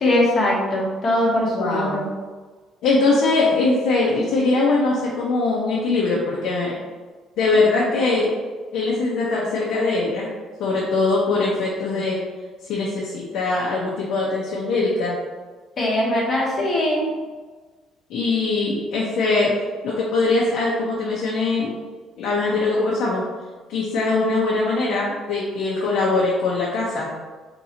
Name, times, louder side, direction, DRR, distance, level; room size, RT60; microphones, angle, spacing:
voice 1, 0.0-2.1 15.8-17.1, left 1 dB, 30° left, -3 dB, 0.9 m, -21 dB
voice 2, 1.5-2.0 2.8-6.8 7.4-8.3 8.7-10.3 10.6-12.2 12.6-15.2 18.1-19.5 19.8-21.8 22.2-23.2 23.7-27.1, left 3 dB, 65° left, -5 dB, 0.8 m, -21 dB
4.3 x 3.8 x 2.8 m, 1.4 s
cardioid pair, 180°, 0 cm